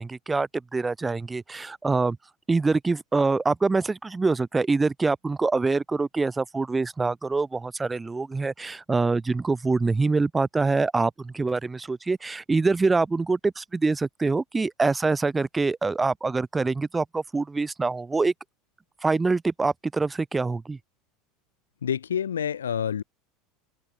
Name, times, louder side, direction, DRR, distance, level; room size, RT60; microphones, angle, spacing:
voice 1, 0.0-2.2 2.5-18.3 19.0-20.8, right 3 dB, 15° right, 0.8 m, -25 dB
voice 2, 21.8-23.0, left 8 dB, 75° left, 0.4 m, -27 dB
open air
figure-of-eight pair, 75°, 0 cm